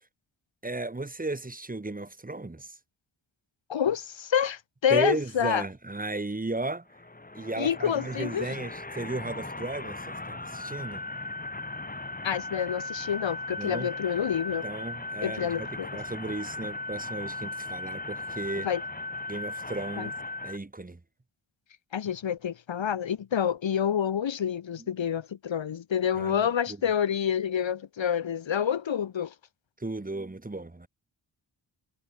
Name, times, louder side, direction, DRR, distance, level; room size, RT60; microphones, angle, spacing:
voice 1, 0.6-2.8 4.9-6.9 7.3-11.0 13.6-13.9 14.6-18.7 19.3-20.1 20.4-21.0 26.2-26.8 29.8-30.9, right 2 dB, 20° right, 2.4 m, -35 dB
voice 2, 3.7-5.6 7.6-8.5 12.2-14.7 15.2-15.9 18.6-18.8 20.0-20.1 21.9-29.3, left 8 dB, 80° left, 1.7 m, -28 dB
sound 1, 6.9-20.6, left 2 dB, 20° left, 3.7 m, -37 dB
wide cardioid pair, 140°, 45 cm